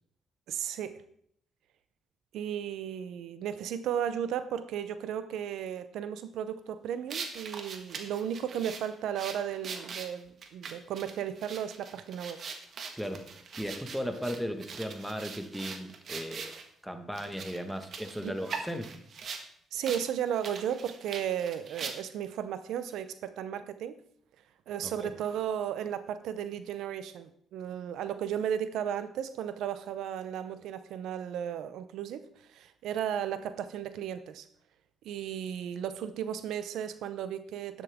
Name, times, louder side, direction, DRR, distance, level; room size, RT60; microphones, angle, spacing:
voice 1, 0.5-1.0 2.3-12.4 18.2-18.4 19.7-24.0 24.7-34.5 35.0-37.8, right 9 dB, 85° right, 12 dB, 0.7 m, -35 dB
sound 1, 7.1-16.6 17.1-19.5 19.8-20.0 20.3-22.3, right 5 dB, 55° right, 1.6 m, -42 dB
voice 2, 13.0-13.3 13.5-16.5 16.8-18.9 24.8-25.1, equal, ahead, 6 dB, 1.6 m, -36 dB
11.5 x 10.5 x 3.6 m, 0.67 s
cardioid pair, 90°, 0 cm